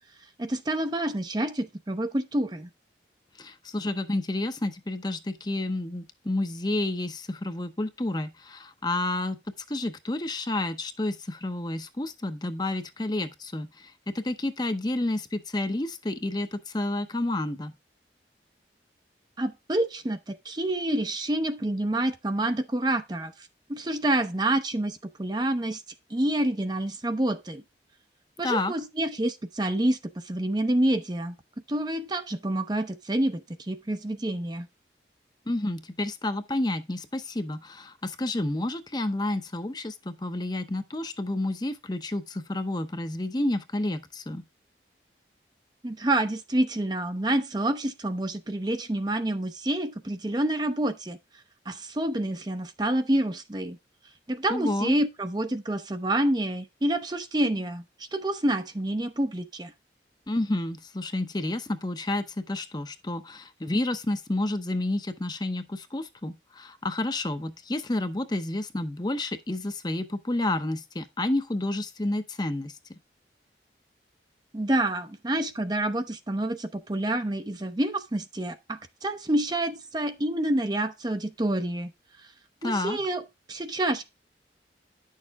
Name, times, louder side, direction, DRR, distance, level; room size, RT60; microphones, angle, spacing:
voice 1, 0.4-2.7 19.4-25.8 26.1-27.6 28.4-31.4 31.7-34.7 45.8-51.2 51.7-53.8 54.3-59.7 74.5-81.9 82.6-83.2 83.5-84.0, right 1 dB, 25° right, 0.6 m, -28 dB
voice 2, 3.4-9.4 9.7-17.7 28.4-28.7 35.5-44.4 54.5-54.9 60.3-72.8 82.6-83.0, left 2 dB, 25° left, 0.7 m, -30 dB
10.0 x 6.6 x 3.5 m
head